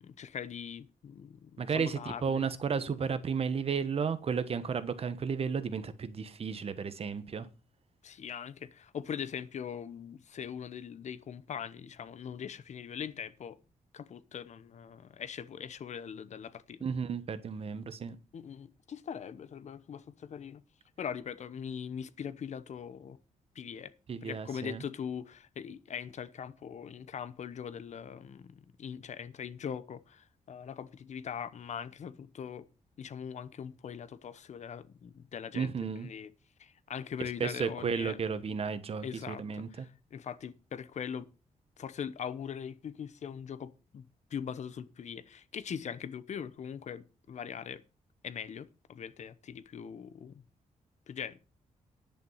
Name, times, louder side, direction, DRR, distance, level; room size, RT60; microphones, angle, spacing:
voice 1, 0.0-2.5 8.0-13.6 13.9-16.8 18.3-20.6 21.0-23.2 23.5-23.9 24.2-32.7 33.0-36.3 36.6-38.2 39.0-41.3 41.8-44.0 44.3-47.8 48.2-50.4 51.1-51.4, left 7 dB, 60° left, 0.9 m, -41 dB
voice 2, 1.6-7.5 16.8-18.2 24.1-24.8 35.5-36.1 37.4-39.9, right 6 dB, 45° right, 1.3 m, -33 dB
10.5 x 9.1 x 5.6 m
wide cardioid pair, 135°, 13 cm